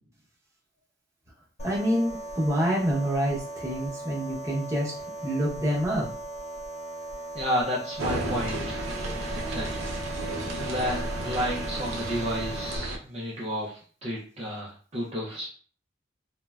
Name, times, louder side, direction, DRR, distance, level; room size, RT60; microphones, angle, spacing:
sound 1, 1.6-12.8, right 2 dB, 35° left, 0.5 m, -38 dB
voice 1, 1.6-4.9 5.2-6.1, equal, 15° right, -5 dB, 0.8 m, -27 dB
voice 2, 7.3-8.8 9.3-9.9 10.2-10.3 10.6-15.5, equal, 35° right, -5 dB, 0.4 m, -32 dB
sound 2, 8.0-13.0, right 2 dB, 85° right, 0.5 m, -33 dB
3.1 x 2.1 x 2.3 m, 0.43 s
head